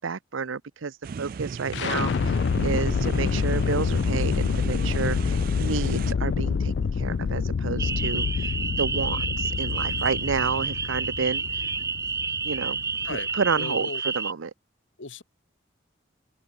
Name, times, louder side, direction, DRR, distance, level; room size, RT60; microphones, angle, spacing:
voice 1, 0.0-11.7 12.4-12.8 13.4-13.9 14.2-14.5, right 5 dB, 85° right, 0.7 m, -30 dB
sound 1, 1.0-6.1, right 5 dB, 45° right, 0.3 m, -36 dB
sound 2, 1.7-13.6, left 5 dB, 60° left, 0.3 m, -27 dB
sound 3, 7.8-14.3, right 4 dB, 15° right, 0.8 m, -30 dB
voice 2, 13.5-14.0 15.0-15.2, left 3 dB, 75° left, 1.4 m, -36 dB
head